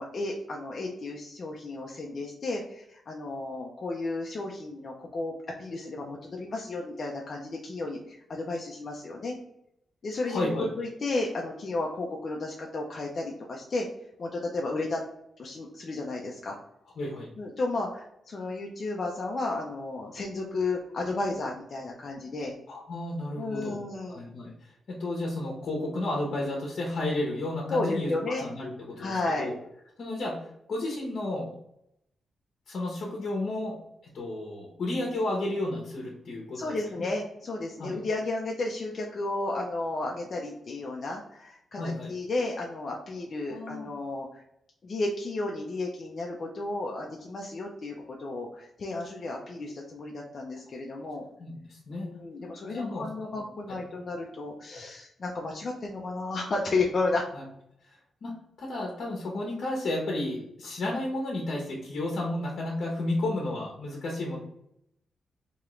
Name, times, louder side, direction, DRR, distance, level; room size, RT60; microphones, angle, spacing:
voice 1, 0.0-9.4 10.0-13.9 14.2-15.0 15.4-16.6 17.4-22.5 23.3-24.2 27.7-28.4 29.0-29.5 36.5-41.8 42.1-44.4 44.8-51.2 51.9-57.2, left 2 dB, 45° left, -1 dB, 0.5 m, -33 dB
voice 2, 10.3-10.7 17.0-17.3 22.7-23.8 24.1-28.1 28.4-29.5 30.0-30.4 30.7-31.5 32.7-33.8 34.1-37.0 37.8-37.9 41.8-42.1 43.5-43.9 51.4-52.1 52.6-53.1 53.3-53.4 57.3-57.4 57.8-58.3 58.6-64.4, left 1 dB, 60° left, -2 dB, 0.9 m, -32 dB
3.6 x 2.9 x 3.1 m, 0.77 s
cardioid pair, 105°, 0 cm